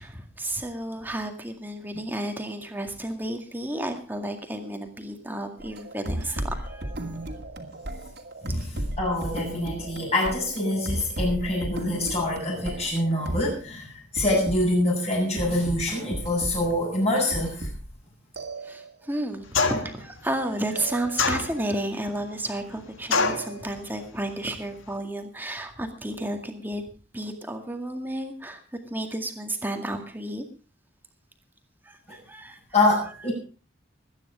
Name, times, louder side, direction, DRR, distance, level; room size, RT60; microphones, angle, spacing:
voice 1, 0.0-7.3 18.6-26.8 27.1-28.6 28.9-30.5 31.9-32.6, right 1 dB, 10° right, 5 dB, 2.0 m, -32 dB
sound 1, 5.6-13.6 14.2-14.6 15.4-16.8 17.2-18.0 18.4-19.2 20.8-21.6 23.2-24.0, right 1 dB, 50° right, 2.4 m, -34 dB
voice 2, 8.4-17.7 32.7-33.3, left 1 dB, 30° left, -6 dB, 6.8 m, -25 dB
sound 2, 19.5-20.0 21.2-21.9 23.1-23.5, left 4 dB, 80° left, 1.8 m, -24 dB
20.0 x 10.0 x 4.9 m, 0.38 s
head